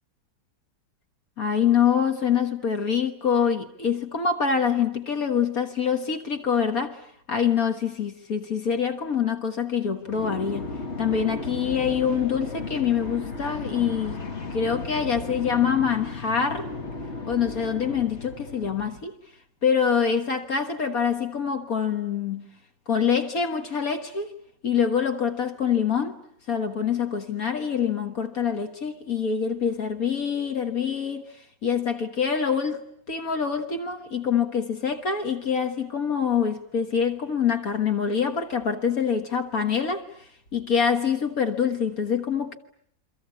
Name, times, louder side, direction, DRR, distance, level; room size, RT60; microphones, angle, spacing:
voice 1, 1.4-7.0 7.3-10.7 11.0-14.2 14.5-16.7 17.3-19.2 19.6-22.5 22.9-24.3 24.6-26.2 26.5-31.2 31.6-40.1 40.5-42.6, left 7 dB, 65° left, 1.9 m, -25 dB
sound 1, 10.0-19.0, left 3 dB, 45° left, 1.7 m, -35 dB
28.0 x 24.5 x 8.4 m
omnidirectional pair, 1.6 m